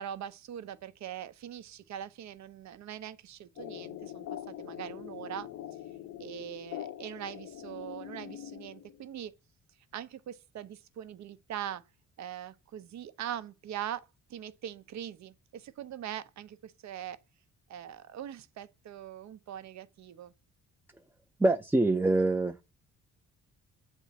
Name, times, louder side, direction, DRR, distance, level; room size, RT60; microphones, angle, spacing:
voice 1, 0.0-5.5 6.2-9.3 9.9-11.8 12.2-17.2 17.7-20.3, right 10 dB, 65° right, 0.8 m, -42 dB
sound 1, 3.6-9.1, left 11 dB, 75° left, 0.6 m, -43 dB
voice 2, 21.4-22.6, right 2 dB, 5° right, 0.4 m, -25 dB
8.0 x 3.6 x 4.2 m
cardioid pair, 90°, 30 cm